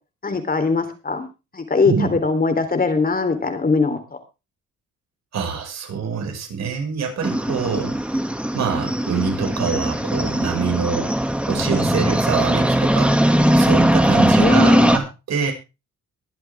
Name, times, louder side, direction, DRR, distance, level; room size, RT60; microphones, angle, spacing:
voice 1, 0.2-1.3 1.5-4.0 14.3-14.9, left 4 dB, 30° left, 8 dB, 3.5 m, -20 dB
voice 2, 5.3-7.9 8.5-11.1 11.5-13.3 13.6-15.5, right 6 dB, 60° right, 2 dB, 6.0 m, -25 dB
sound 1, 7.2-15.0, right 1 dB, 5° right, 2.2 m, -19 dB
23.0 x 7.9 x 3.6 m, 0.29 s
cardioid pair, 90°, 30 cm